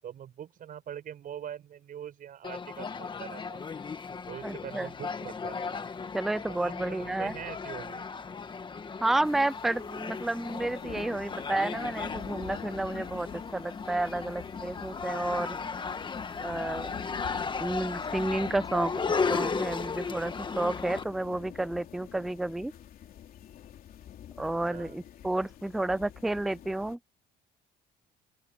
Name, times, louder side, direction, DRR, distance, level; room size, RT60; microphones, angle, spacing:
voice 1, 0.0-3.7 4.3-5.8 6.6-8.1 24.4-25.0, right 9 dB, 55° right, 7.3 m, -43 dB
sound 1, 2.4-21.0, left 5 dB, 30° left, 1.6 m, -36 dB
voice 2, 4.4-4.9 6.1-7.3 9.0-15.6 16.4-16.9 17.6-22.7 24.4-27.0, right 2 dB, ahead, 0.3 m, -31 dB
sound 2, 9.2-27.0, left 10 dB, 60° left, 3.3 m, -47 dB
open air
cardioid pair, 110°, 17 cm